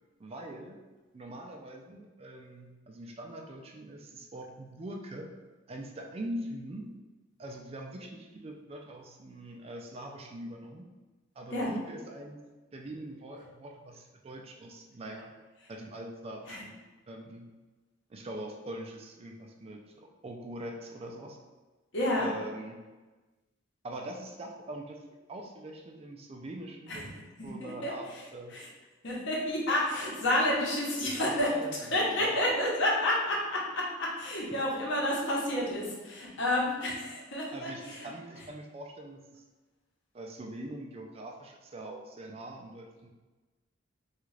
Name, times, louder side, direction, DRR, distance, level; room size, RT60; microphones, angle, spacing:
voice 1, 0.2-0.8 1.1-5.3 5.7-6.9 7.4-10.9 11.4-12.4 12.7-15.3 15.7-16.7 17.1-17.5 18.1-21.4 22.2-22.8 23.8-25.0 25.3-27.1 27.4-28.1 28.3-28.6 31.2-32.4 37.5-39.4 40.1-43.1, right 1 dB, 30° right, 2 dB, 0.4 m, -43 dB
voice 2, 21.9-22.3 26.9-27.0 27.4-28.2 28.5-28.7 29.0-31.5 31.9-38.1, left 1 dB, 70° left, -4 dB, 0.9 m, -30 dB
3.6 x 2.4 x 3.2 m, 1.2 s
head